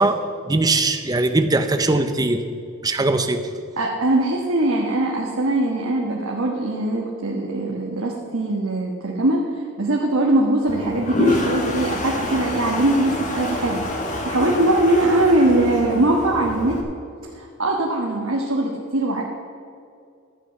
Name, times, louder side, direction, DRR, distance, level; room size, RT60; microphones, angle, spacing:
voice 1, 0.0-2.4 2.8-3.5, right 2 dB, 20° right, 7 dB, 0.6 m, -20 dB
voice 2, 3.8-13.8 14.2-16.8 17.3-19.2, right 1 dB, 70° right, -2 dB, 1.3 m, -21 dB
Toilet flush, 10.7-16.8, left 2 dB, 35° left, 1.4 m, -26 dB
12.5 x 8.6 x 5.7 m, 2.5 s
head